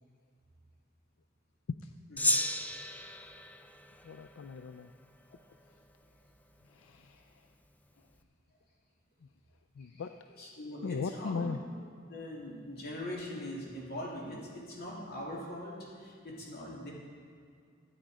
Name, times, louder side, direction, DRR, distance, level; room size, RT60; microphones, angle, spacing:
Gong, 2.2-4.8, left 1 dB, 10° left, 0.4 m, -34 dB
voice 1, 4.0-4.9 6.6-7.5 9.2-9.3 9.8-10.2 10.8-11.6, left 5 dB, 80° left, 8 dB, 0.4 m, -38 dB
voice 2, 10.4-11.5 12.1-16.9, left 1 dB, 50° left, -3 dB, 2.8 m, -42 dB
13.0 x 9.2 x 4.9 m, 2.3 s
head